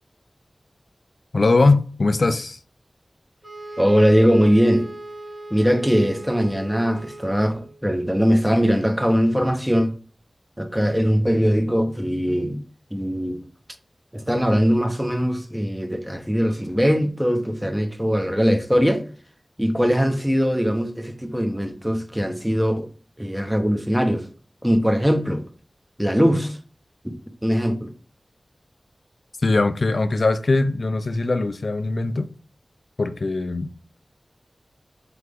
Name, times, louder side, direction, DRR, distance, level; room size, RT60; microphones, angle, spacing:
voice 1, 1.3-2.6 29.4-32.3 33.0-33.7, left 3 dB, 65° left, 0.4 m, -21 dB
sound 1, 3.4-7.8, right 2 dB, 30° right, 1.3 m, -38 dB
voice 2, 3.8-4.9 5.5-9.9 10.6-12.6 12.9-13.4 14.1-19.0 19.6-22.9 23.2-24.3 24.6-25.5 26.0-26.6 27.4-27.9, equal, 5° right, 0.7 m, -21 dB
3.8 x 3.3 x 3.5 m
wide cardioid pair, 55°, 0 cm